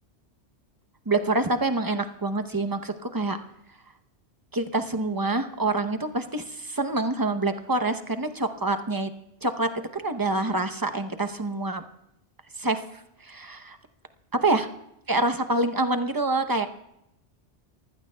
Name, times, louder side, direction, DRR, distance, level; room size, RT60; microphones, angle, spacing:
voice 1, 1.1-3.4 4.5-9.1 9.4-11.8 12.5-13.8 14.4-14.7 15.1-16.7, right 2 dB, 20° right, 8 dB, 0.8 m, -26 dB
23.5 x 15.5 x 2.3 m, 0.82 s
omnidirectional pair, 1.1 m